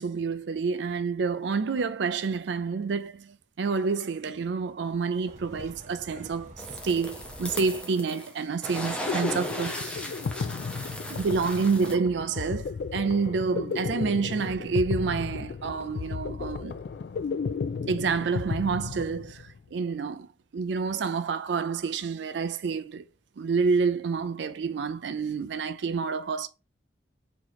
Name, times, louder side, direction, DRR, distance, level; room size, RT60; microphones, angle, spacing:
voice 1, 0.0-6.5 6.8-10.1 11.1-16.7 17.9-20.3 20.5-23.0 23.4-26.5, right 5 dB, 75° right, 0.4 m, -28 dB
sound 1, 5.3-7.8, right 1 dB, 40° right, 0.7 m, -47 dB
sound 2, 6.6-8.3 8.6-12.0, equal, 5° left, 0.6 m, -36 dB
sound 3, 8.8-19.6, left 5 dB, 60° left, 0.3 m, -34 dB
3.1 x 2.9 x 3.9 m
head